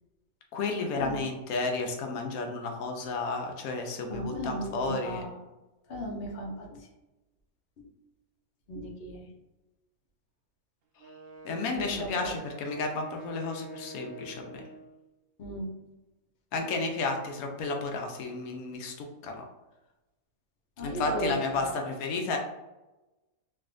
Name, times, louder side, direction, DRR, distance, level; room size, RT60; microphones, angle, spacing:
voice 1, 0.5-5.2 11.4-14.6 16.5-19.4 20.8-22.4, left 3 dB, 80° left, 3 dB, 1.0 m, -32 dB
voice 2, 4.1-5.3 5.9-6.9 7.8-7.9 8.7-9.3 11.7-12.1 15.4-15.7 20.8-21.7, equal, 55° left, 0 dB, 0.8 m, -35 dB
Wind instrument woodwind instrument, 11.0-15.0, right 1 dB, 65° right, 0.6 m, -46 dB
3.3 x 2.7 x 2.4 m, 1.1 s
omnidirectional pair, 1.5 m